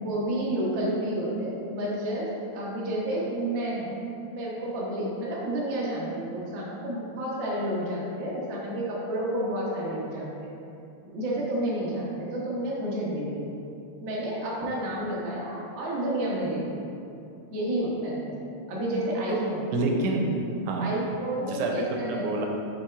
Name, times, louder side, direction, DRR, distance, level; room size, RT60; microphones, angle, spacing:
voice 1, 0.0-2.3 2.5-3.9 4.3-10.5 11.1-13.4 14.0-16.8 17.5-18.3 18.7-19.6 20.8-22.3, right 1 dB, 50° right, -6 dB, 1.5 m, -30 dB
voice 2, 19.7-20.3 20.7-21.0 21.4-22.5, right 2 dB, 90° right, 1 dB, 2.1 m, -28 dB
7.2 x 4.3 x 3.5 m, 2.6 s
omnidirectional pair, 3.4 m